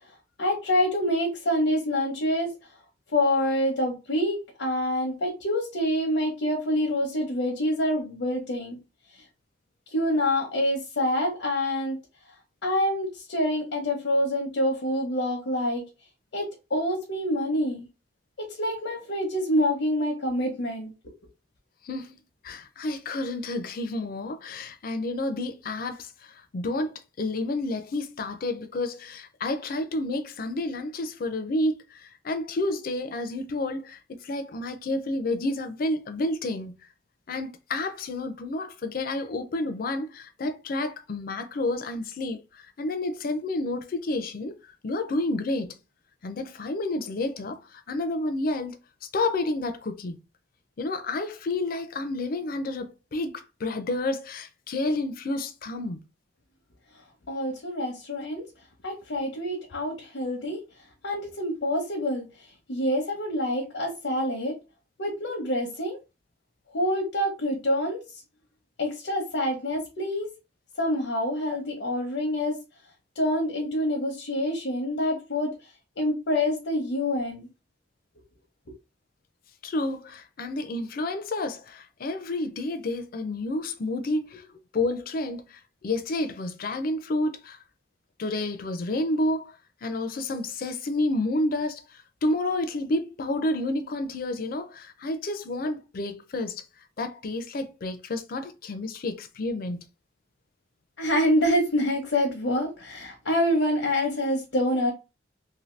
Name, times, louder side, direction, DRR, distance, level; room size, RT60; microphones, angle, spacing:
voice 1, 0.4-2.5 3.1-8.8 9.9-12.0 12.6-15.8 16.3-17.9 18.5-20.9 57.3-58.4 58.8-60.6 61.0-64.6 65.0-66.0 66.7-68.0 68.8-70.3 70.8-72.6 73.2-75.5 76.0-77.5 101.0-104.9, left 1 dB, 90° left, 0.8 m, -26 dB
voice 2, 21.8-22.2 22.4-36.7 37.3-44.6 44.8-45.8 46.2-48.8 49.1-50.2 50.8-56.0 79.6-84.5 84.7-87.6 88.2-89.5 89.8-96.6 97.0-99.8, left 2 dB, 50° left, 0.4 m, -30 dB
2.7 x 2.6 x 3.1 m
head